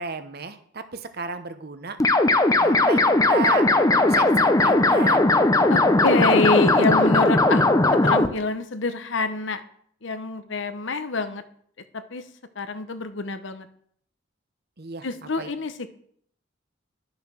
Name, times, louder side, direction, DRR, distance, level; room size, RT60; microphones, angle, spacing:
voice 1, 0.0-2.0 2.6-3.0 3.3-3.7 4.1-5.2 14.8-15.1 15.4-15.5, right 4 dB, 50° right, 9 dB, 1.1 m, -33 dB
sound 1, 2.0-8.3, left 2 dB, 15° left, 0.7 m, -18 dB
voice 2, 5.7-9.6 10.0-11.4 11.9-12.2 12.6-13.7 15.0-16.0, left 3 dB, 65° left, 10 dB, 0.9 m, -26 dB
11.0 x 7.1 x 6.2 m, 0.64 s
head